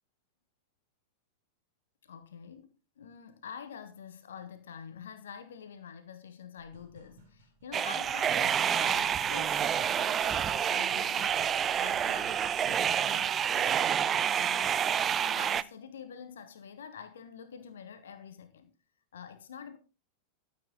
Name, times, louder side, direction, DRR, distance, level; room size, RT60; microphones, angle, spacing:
voice 1, 2.0-11.4 11.8-14.8 15.2-18.7 19.1-19.8, left 7 dB, 65° left, 1.3 m, -47 dB
sound 1, 6.6-12.8, equal, 50° right, 5.5 m, -55 dB
sound 2, 7.7-15.6, right 8 dB, 25° right, 0.5 m, -28 dB
13.5 x 8.7 x 3.9 m
figure-of-eight pair, 90°, 0 cm